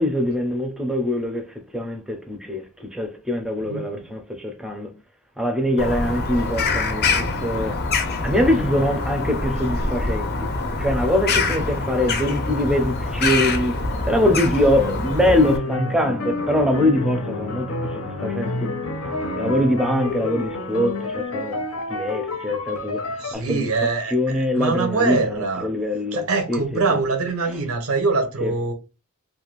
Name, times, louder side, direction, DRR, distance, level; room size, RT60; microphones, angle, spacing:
voice 1, 0.0-1.5 1.7-4.9 5.4-7.8 8.2-10.3 10.8-13.7 14.0-18.7 19.0-21.6 21.9-23.7 24.1-27.0 28.4-28.5, left 1 dB, 5° right, 0.5 m, -23 dB
voice 2, 3.6-4.0 23.2-25.7 26.1-28.7, right 4 dB, 85° right, 0.6 m, -24 dB
Bird vocalization bird call bird song, 5.8-15.6, left 3 dB, 50° left, 0.5 m, -25 dB
sound 1, 14.7-23.3, left 2 dB, 85° left, 0.6 m, -29 dB
2.5 x 2.2 x 2.9 m
head